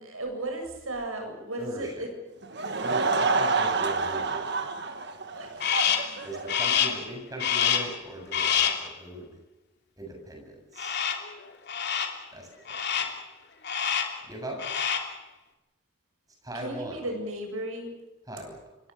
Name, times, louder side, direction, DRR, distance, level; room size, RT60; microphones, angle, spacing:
voice 1, 0.0-2.1 2.7-3.0 5.3-5.5 6.1-6.3 16.5-17.9, right 1 dB, 70° right, 4 dB, 7.4 m, -35 dB
voice 2, 1.6-2.0 2.8-4.5 6.2-9.4 10.0-11.1 12.3-13.1 14.3-14.6 16.4-17.0 18.3-18.6, right 1 dB, 15° right, 2 dB, 7.5 m, -39 dB
Laughter / Crowd, 2.4-6.9, right 4 dB, 50° right, 1.7 m, -28 dB
Crow, 5.6-6.2 6.5-7.1 7.4-8.0 8.3-8.9 10.8-11.3 11.7-12.2 12.7-13.2 13.6-14.2 14.5-15.2, left 8 dB, 50° left, 3.0 m, -27 dB
26.0 x 24.0 x 7.0 m, 1.0 s
head